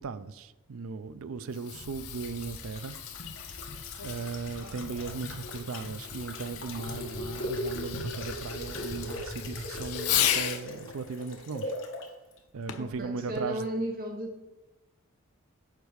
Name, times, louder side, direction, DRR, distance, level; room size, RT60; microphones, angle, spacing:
voice 1, 0.0-3.0 4.0-11.7 12.5-13.7, right 4 dB, 70° right, 0.4 m, -37 dB
Fireworks, 1.3-10.7 12.7-13.0 13.7-13.8, left 10 dB, 90° left, 0.8 m, -36 dB
sound 1, 1.7-12.1 12.4-12.5, left 1 dB, 60° left, 1.5 m, -39 dB
voice 2, 12.8-14.4, right 1 dB, 40° right, 0.9 m, -34 dB
8.2 x 4.7 x 6.4 m
head